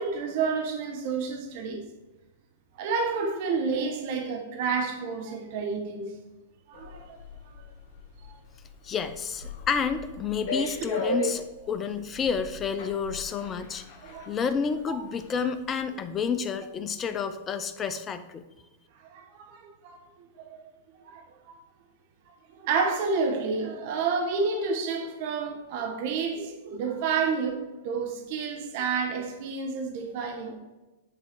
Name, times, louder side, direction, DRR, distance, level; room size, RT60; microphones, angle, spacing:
voice 1, 0.0-1.8 2.8-6.1 6.7-7.2 8.2-8.4 14.0-14.3 14.9-15.0 19.0-20.0 20.4-20.6 21.0-21.6 22.3-30.6, right 5 dB, 55° right, 1.4 m, -30 dB
sound 1, 6.7-15.8 16.1-16.3, left 1 dB, 55° left, 1.4 m, -37 dB
voice 2, 8.8-13.8 14.3-18.4, left 6 dB, 25° left, 0.7 m, -30 dB
9.7 x 3.8 x 4.7 m
hypercardioid pair, 110°, 0 cm